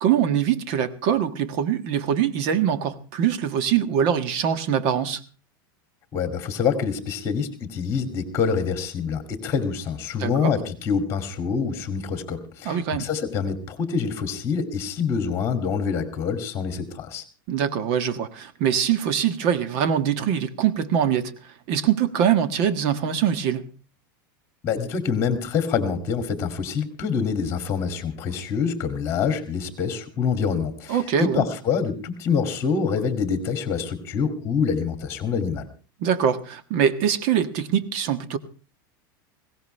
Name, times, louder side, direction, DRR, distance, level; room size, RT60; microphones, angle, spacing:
voice 1, 0.0-5.2 10.2-10.5 12.6-13.1 17.5-21.3 21.7-23.6 30.9-31.4 36.0-38.4, right 8 dB, 50° right, 1.4 m, -23 dB
voice 2, 6.1-17.2 24.6-35.7, left 6 dB, 25° left, 2.4 m, -26 dB
21.0 x 17.0 x 3.3 m
supercardioid pair, 155°, 11 cm